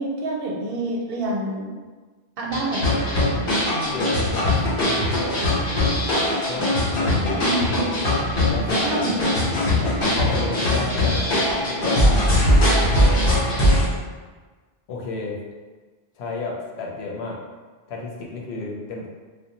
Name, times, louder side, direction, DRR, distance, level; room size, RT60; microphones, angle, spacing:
voice 1, 0.0-1.7 2.4-3.2 7.4-7.9 8.8-9.3, right 2 dB, 65° right, -2 dB, 0.7 m, -27 dB
sound 1, 2.5-13.9, left 1 dB, 60° left, 1.1 m, -21 dB
voice 2, 3.7-5.4 6.5-7.5 8.4-9.1 9.8-11.2 11.5-12.3 14.9-15.4 16.2-17.4 17.9-19.1, left 3 dB, 90° left, -1 dB, 0.8 m, -32 dB
2.6 x 2.1 x 2.7 m, 1.4 s
omnidirectional pair, 1.0 m